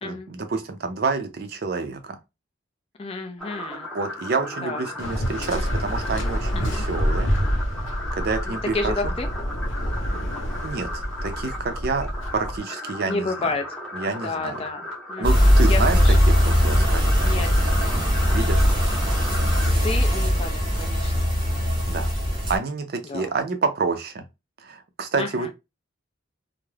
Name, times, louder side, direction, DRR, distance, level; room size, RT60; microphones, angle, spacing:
voice 1, 0.0-2.2 3.7-7.3 8.1-9.1 10.6-13.5 13.9-14.6 15.2-17.4 17.9-18.6 19.7-19.8 21.9-22.1 22.5-24.2 24.6-25.5, right 4 dB, 50° right, 0.5 m, -28 dB
voice 2, 3.0-3.9 4.6-4.8 6.7-6.8 8.5-9.3 13.0-13.6 14.2-16.2 17.2-17.9 18.3-18.5 19.8-21.3 23.0-23.3 25.2-25.5, left 3 dB, 30° left, 0.3 m, -31 dB
sound 1, 3.4-19.7, left 1 dB, 5° left, 0.7 m, -36 dB
Waves surf, 5.0-12.6, equal, 70° left, 0.8 m, -27 dB
sound 2, 15.2-22.6, equal, 25° right, 0.9 m, -20 dB
2.3 x 2.0 x 3.1 m
head